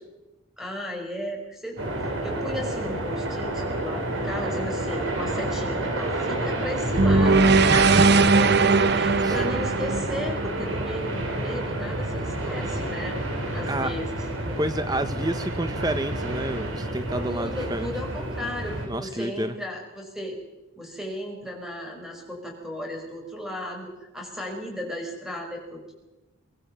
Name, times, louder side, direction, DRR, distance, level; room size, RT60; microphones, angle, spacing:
voice 1, 0.6-1.8 2.2-7.6 8.2-13.2 13.5-14.6 17.2-20.4 20.8-25.9, left 1 dB, ahead, 2 dB, 5.4 m, -35 dB
sound 1, 1.8-18.9, right 1 dB, 70° right, 5.1 m, -29 dB
sound 2, 6.9-11.2, right 3 dB, 50° right, 0.9 m, -20 dB
voice 2, 7.7-8.2 9.2-9.4 13.7-13.9 14.6-17.9 18.9-19.5, right 1 dB, 20° right, 10 dB, 0.8 m, -29 dB
24.0 x 20.0 x 6.8 m, 1.0 s
head